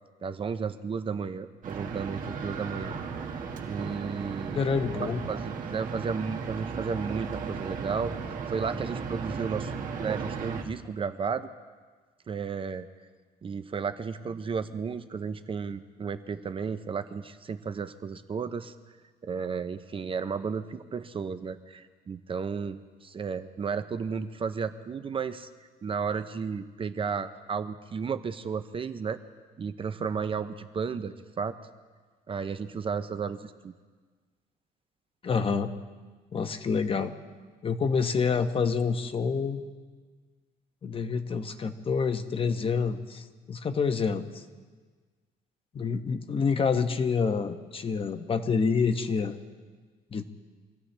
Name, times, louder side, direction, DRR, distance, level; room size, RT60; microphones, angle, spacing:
voice 1, 0.2-2.9 3.7-4.6 5.3-8.1 8.5-9.7 10.0-11.5 12.3-12.9 13.4-18.7 19.2-25.5 25.8-29.2 29.6-31.6 32.3-33.7, right 5 dB, 30° right, 11 dB, 0.7 m, -33 dB
sound 1, 1.6-10.6, right 5 dB, 50° right, 1.9 m, -35 dB
voice 2, 4.5-5.2 35.2-35.7 36.3-37.1 37.6-39.6 40.8-44.4 45.7-49.4 50.1-50.2, left 5 dB, 30° left, 8 dB, 1.0 m, -27 dB
25.5 x 16.0 x 3.4 m, 1.4 s
cardioid pair, 110°, 17 cm